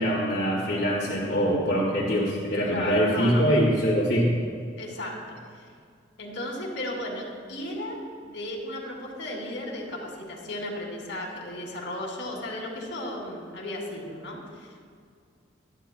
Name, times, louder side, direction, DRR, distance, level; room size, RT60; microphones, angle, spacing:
voice 1, 0.0-4.4, equal, 60° left, -6 dB, 1.8 m, -24 dB
voice 2, 2.6-3.4 4.8-5.2 5.6-5.7 6.2-14.8, left 1 dB, 80° left, -1 dB, 2.6 m, -35 dB
25.5 x 10.0 x 2.3 m, 2.2 s
head